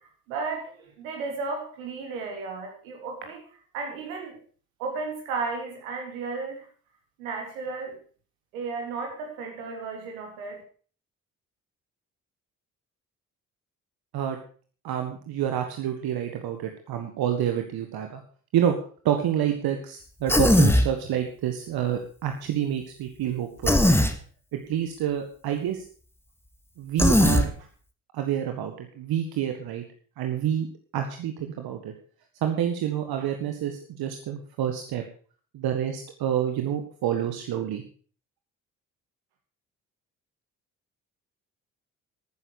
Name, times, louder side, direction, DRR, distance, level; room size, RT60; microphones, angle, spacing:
voice 1, 0.3-3.4 3.7-4.4 4.8-6.6 7.2-8.0 8.5-10.6, right 4 dB, 80° right, 2 dB, 3.6 m, -34 dB
voice 2, 14.8-18.2 18.5-18.7 19.0-24.0 24.5-25.8 26.8-27.5 28.1-29.8 30.2-30.7 30.9-31.9 32.4-35.0 35.5-37.8, right 10 dB, 60° right, 6 dB, 1.7 m, -28 dB
Human voice, 20.3-20.9 23.6-24.1 27.0-27.5, left 1 dB, 5° left, 2.1 m, -18 dB
13.0 x 9.5 x 6.6 m, 0.43 s
hypercardioid pair, 45°, 41 cm